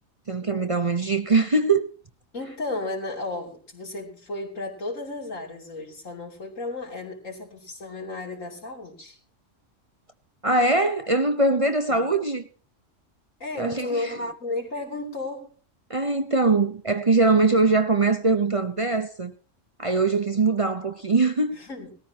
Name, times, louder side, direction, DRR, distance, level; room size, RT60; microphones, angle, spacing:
voice 1, 0.3-1.9 10.4-12.4 13.6-14.3 15.9-19.3 19.8-21.6, right 3 dB, 30° right, 0.7 m, -22 dB
voice 2, 2.3-9.2 11.9-12.0 13.4-15.5 21.5-21.9, left 2 dB, 85° left, 3.6 m, -33 dB
19.0 x 14.0 x 2.9 m
omnidirectional pair, 1.3 m